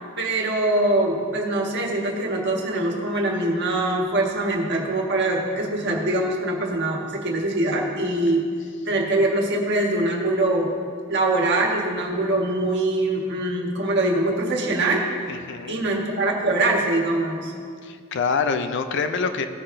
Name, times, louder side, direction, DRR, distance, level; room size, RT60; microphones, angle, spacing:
voice 1, 0.2-8.4 8.8-10.7 11.1-15.0 15.7-17.5, right 2 dB, 55° right, 0 dB, 1.5 m, -23 dB
voice 2, 15.3-15.8 17.8-19.5, left 5 dB, 55° left, 8 dB, 0.5 m, -25 dB
16.5 x 5.7 x 3.3 m, 2.2 s
head